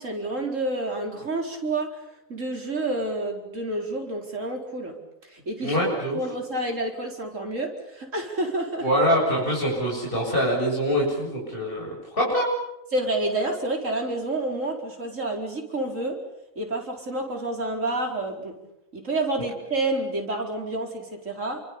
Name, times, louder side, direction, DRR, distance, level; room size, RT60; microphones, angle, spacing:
voice 1, 0.0-2.0 2.3-5.0 5.2-5.8 6.1-8.9 12.9-16.2 16.6-18.6 18.9-21.6, right 2 dB, 70° right, 2 dB, 4.9 m, -29 dB
voice 2, 5.6-6.2 8.8-12.5, equal, 40° left, -3 dB, 7.6 m, -24 dB
30.0 x 24.5 x 7.0 m, 0.83 s
omnidirectional pair, 1.4 m